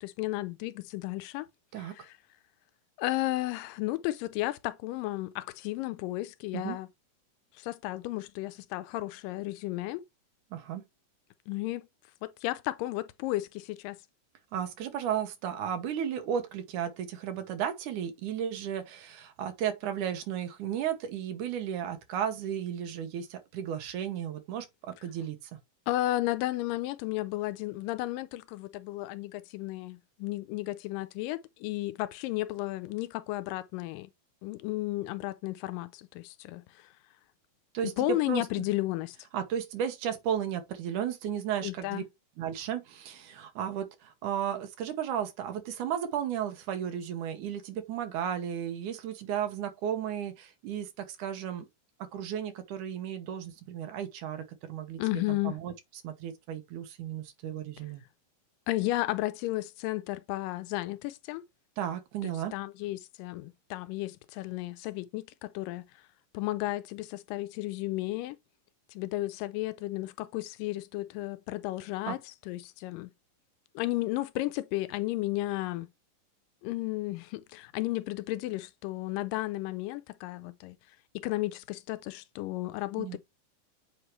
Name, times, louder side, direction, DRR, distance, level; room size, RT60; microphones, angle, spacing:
voice 1, 0.0-1.5 1.8-2.1 3.0-6.9 7.6-10.1 11.5-11.9 12.2-14.0 25.9-34.1 34.4-36.9 37.8-39.2 41.6-42.1 55.0-55.6 58.7-61.5 62.2-65.9 66.3-68.4 68.9-72.2 72.5-73.1 73.8-75.9 76.6-80.8 81.2-83.2, left 17 dB, 85° left, 2.3 m, -33 dB
voice 2, 10.5-10.8 14.5-25.6 37.7-38.7 39.3-42.0 42.4-51.7 52.1-55.7 56.0-58.0 61.8-62.5 72.1-72.2 83.0-83.2, right 9 dB, 70° right, 2.4 m, -34 dB
7.9 x 4.8 x 3.1 m
omnidirectional pair, 3.8 m